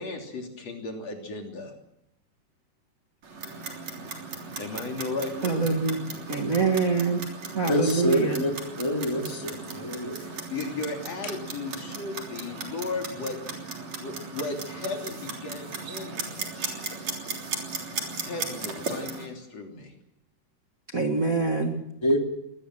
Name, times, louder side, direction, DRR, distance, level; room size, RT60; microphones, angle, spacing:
voice 1, 0.0-1.7 4.6-5.7 10.5-16.3 18.2-19.9, left 3 dB, 40° left, 2 dB, 4.0 m, -35 dB
Clock, 3.2-19.3, right 4 dB, 45° right, 4.3 m, -37 dB
voice 2, 5.4-6.0 6.3-7.2 7.5-8.4 20.9-21.8, right 4 dB, 85° right, 2 dB, 0.7 m, -25 dB
voice 3, 7.7-8.5 8.8-10.4 22.0-22.2, equal, 10° left, 2 dB, 2.2 m, -27 dB
22.0 x 19.0 x 7.7 m, 0.81 s
omnidirectional pair, 4.7 m